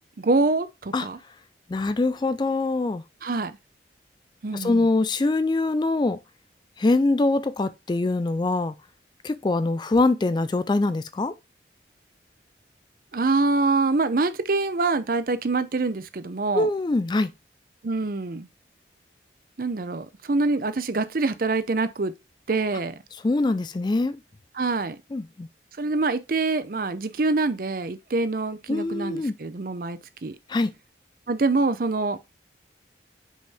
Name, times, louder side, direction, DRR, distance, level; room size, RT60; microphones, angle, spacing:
voice 1, 0.2-1.2 3.2-3.5 4.4-4.8 13.1-16.7 17.8-18.5 19.6-22.1 22.5-23.0 24.5-25.0 25.8-30.4 31.3-32.2, right 3 dB, 50° right, 0.6 m, -25 dB
voice 2, 1.7-3.0 4.5-6.2 6.8-8.7 9.2-11.3 16.5-17.3 23.2-24.2 25.1-25.5 28.7-29.3 30.5-30.7, left 2 dB, 25° left, 0.3 m, -23 dB
5.3 x 5.1 x 3.4 m
head